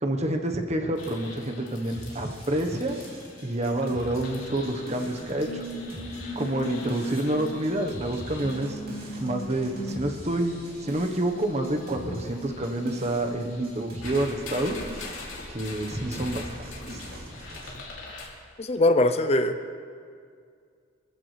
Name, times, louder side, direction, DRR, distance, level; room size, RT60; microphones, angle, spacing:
voice 1, 0.0-3.0 3.4-5.6 6.3-8.8 9.2-14.7 15.5-16.5, right 1 dB, 35° right, 4 dB, 1.2 m, -28 dB
sound 1, 1.0-18.3, left 1 dB, 85° left, 2.9 m, -40 dB
sound 2, 1.9-17.7, right 1 dB, 50° right, 3.1 m, -43 dB
voice 2, 18.6-19.5, left 1 dB, 35° left, 8 dB, 0.6 m, -21 dB
24.5 x 14.5 x 3.3 m, 2.2 s
head